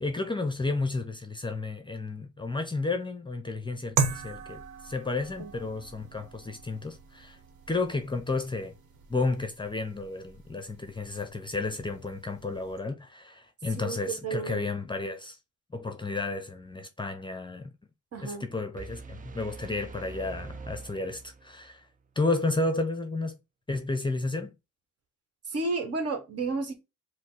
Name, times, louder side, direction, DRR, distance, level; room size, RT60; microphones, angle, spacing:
voice 1, 0.0-7.4 7.7-8.8 9.1-15.4 15.7-17.7 18.2-21.9 22.2-23.3 23.7-24.5, left 3 dB, 15° left, 0.6 m, -32 dB
sound 1, 4.0-12.8, right 5 dB, 85° right, 1.0 m, -38 dB
voice 2, 13.8-14.6 18.1-18.5 25.5-26.7, right 3 dB, 55° right, 1.3 m, -32 dB
sound 2, 18.8-21.7, right 4 dB, 25° right, 0.5 m, -43 dB
5.0 x 2.1 x 4.0 m
cardioid pair, 90°, 30 cm